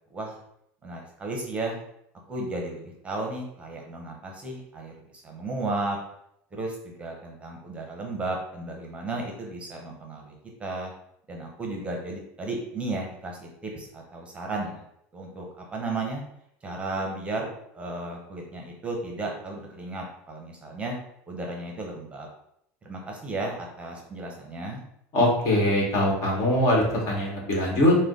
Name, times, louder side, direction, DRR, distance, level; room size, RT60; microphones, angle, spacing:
voice 1, 0.8-1.8 2.3-6.0 6.5-10.3 10.6-10.9 11.3-14.8 15.1-16.2 16.6-17.5 17.7-21.0 21.3-22.3 22.8-24.8, right 2 dB, 20° right, 0 dB, 0.8 m, -34 dB
voice 2, 25.1-28.0, left 1 dB, 50° left, -2 dB, 1.6 m, -22 dB
4.8 x 2.2 x 3.8 m, 0.74 s
supercardioid pair, 130°, 7 cm